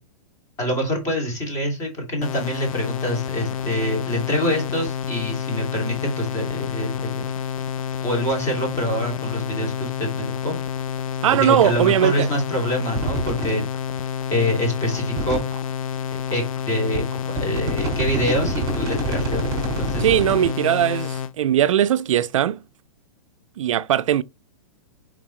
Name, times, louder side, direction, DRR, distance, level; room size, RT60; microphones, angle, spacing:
voice 1, 0.6-7.3 8.0-10.6 11.3-13.6 14.3-15.4 16.3-17.1 17.4-20.1, equal, 15° left, 2.5 m, -25 dB
sound 1, 2.2-21.3, left 8 dB, 70° left, 0.5 m, -29 dB
voice 2, 11.2-12.3 20.0-22.6 23.6-24.2, right 11 dB, 65° right, 0.4 m, -19 dB
sound 2, 13.0-13.5 14.0-14.1 14.9-15.6 16.3-16.4 16.9-20.5, right 4 dB, 20° right, 3.3 m, -27 dB
7.3 x 4.8 x 3.1 m
hypercardioid pair, 170°, 18 cm